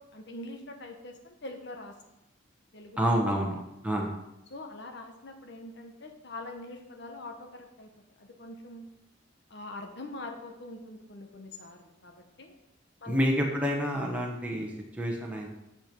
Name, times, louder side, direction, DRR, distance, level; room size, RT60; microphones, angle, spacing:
voice 1, 0.1-2.0 2.7-3.0 4.5-7.9 8.2-8.9 9.5-12.5 13.0-13.2, left 2 dB, 55° left, 4 dB, 1.1 m, -43 dB
voice 2, 3.0-3.6 3.8-4.1 13.1-14.7 15.0-15.5, equal, 5° right, -1 dB, 1.2 m, -28 dB
8.9 x 7.1 x 5.3 m, 0.90 s
head